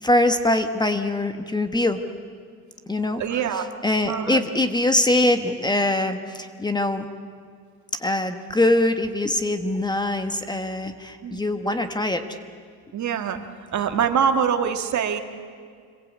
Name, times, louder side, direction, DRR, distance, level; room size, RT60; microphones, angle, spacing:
voice 1, 0.0-2.0 2.9-3.4 3.8-7.0 8.0-12.2, left 1 dB, 10° left, 8 dB, 1.3 m, -23 dB
voice 2, 3.2-3.7 4.0-4.4 11.2-11.4 12.9-13.4 13.7-15.2, right 7 dB, 55° right, 7 dB, 1.9 m, -24 dB
27.0 x 22.0 x 8.4 m, 2.1 s
cardioid pair, 130°, 35 cm